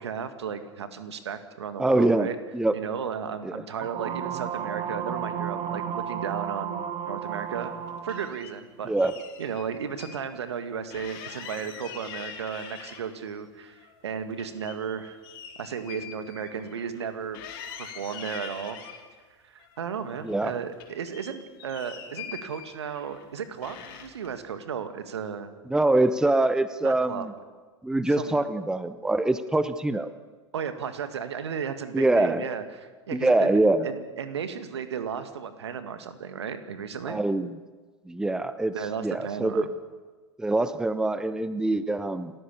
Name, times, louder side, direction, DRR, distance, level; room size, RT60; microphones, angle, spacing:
voice 1, 0.0-2.4 2.7-6.8 7.1-7.7 8.0-8.9 9.4-15.2 15.6-17.4 17.8-18.8 19.4-25.5 26.8-27.3 28.2-28.4 30.5-37.2 38.7-39.7, right 7 dB, 65° right, 10 dB, 1.9 m, -34 dB
voice 2, 1.8-2.3 2.5-2.7 3.4-3.5 8.9-9.1 20.2-20.6 25.7-27.3 27.8-30.1 31.9-32.5 33.1-33.9 37.1-37.5 38.1-38.7 39.0-39.7 40.4-42.3, right 2 dB, 5° right, 13 dB, 0.8 m, -24 dB
sound 1, 3.8-8.3, right 8 dB, 30° right, 1.6 m, -33 dB
sound 2, 7.5-8.5 9.0-10.2 10.5-10.6 10.9-13.3 13.7-17.1 17.3-19.0 19.6-20.5 20.7-23.3 23.6-24.3, left 8 dB, 50° left, 3.9 m, -44 dB
28.5 x 14.5 x 6.9 m, 1.4 s
figure-of-eight pair, 90°, 15 cm